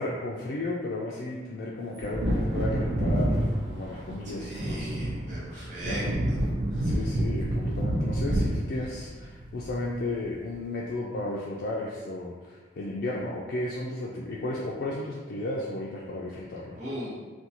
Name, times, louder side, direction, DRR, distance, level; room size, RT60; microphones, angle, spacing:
voice 1, 0.0-4.9 5.8-6.2 6.8-16.8, left 2 dB, 60° left, -4 dB, 0.3 m, -34 dB
Wind / Thunder, 2.0-10.2 10.5-10.6, right 1 dB, 65° right, 0.4 m, -28 dB
voice 2, 4.4-6.0 6.7-7.0 16.8-17.1, right 1 dB, 40° right, -8 dB, 0.8 m, -38 dB
2.5 x 2.3 x 2.8 m, 1.3 s
head